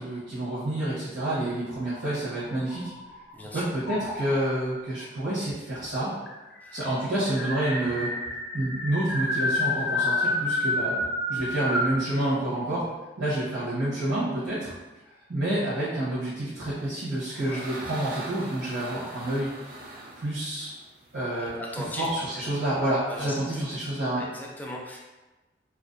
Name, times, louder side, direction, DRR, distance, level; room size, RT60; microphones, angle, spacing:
voice 1, 0.0-2.9 3.5-6.1 6.7-8.1 8.5-11.0 11.3-12.9 13.2-14.7 15.3-19.5 20.1-20.7 21.1-24.2, right 1 dB, 75° right, -11 dB, 0.8 m, -28 dB
sound 1, 1.9-3.3 3.9-4.5 5.5-5.6 5.8-5.9 6.3-12.0, left 2 dB, 75° left, 0.4 m, -29 dB
voice 2, 3.3-3.6 6.6-6.8 17.3-17.6 21.4-22.1 23.1-23.6 24.2-25.0, left 1 dB, 10° left, -2 dB, 0.3 m, -38 dB
sound 2, 16.9-21.6, right 1 dB, 55° right, 0.4 m, -42 dB
2.4 x 2.1 x 2.5 m, 1.1 s
head